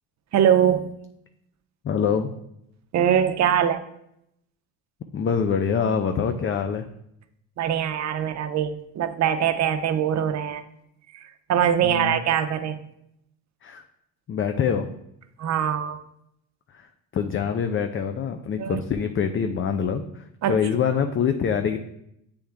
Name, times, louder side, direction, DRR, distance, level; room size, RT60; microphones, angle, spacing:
voice 1, 0.3-0.9 2.9-3.8 7.6-10.6 11.1-12.8 15.4-16.0 18.6-18.8 20.4-20.6, right 9 dB, 40° right, 9 dB, 0.7 m, -22 dB
voice 2, 1.8-2.3 5.1-6.8 11.8-12.2 13.6-13.8 14.3-14.9 16.7-16.9 17.1-21.8, left 7 dB, 30° left, 7 dB, 0.5 m, -25 dB
8.3 x 3.5 x 3.4 m, 0.77 s
hypercardioid pair, 65°, 43 cm